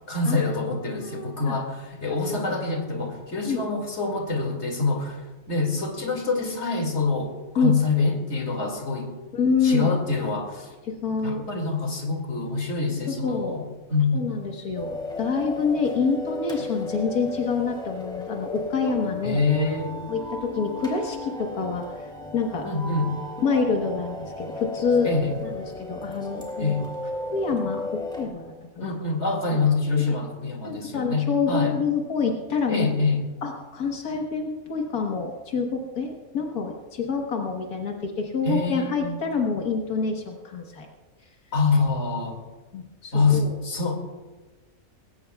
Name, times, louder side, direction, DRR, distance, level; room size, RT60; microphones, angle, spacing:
voice 1, 0.1-5.2 5.5-9.1 9.6-10.7 11.2-14.3 18.9-19.0 19.2-20.0 22.6-23.1 25.0-25.3 26.6-26.8 28.8-31.7 32.7-33.2 38.4-39.2 41.5-42.4 43.1-44.0, left 3 dB, 50° left, 2 dB, 2.6 m, -25 dB
voice 2, 0.9-1.6 3.5-3.7 7.6-7.8 9.3-10.0 10.9-11.5 13.1-13.6 14.1-19.4 20.1-22.1 22.3-22.7 23.4-25.1 25.4-26.7 27.3-28.9 29.5-29.6 30.6-32.9 33.4-40.9 42.7-43.5, left 5 dB, 85° left, 2 dB, 1.8 m, -27 dB
sound 1, 14.8-28.3, left 2 dB, 5° left, 2.4 m, -35 dB
20.0 x 17.5 x 2.3 m, 1.2 s
omnidirectional pair, 1.5 m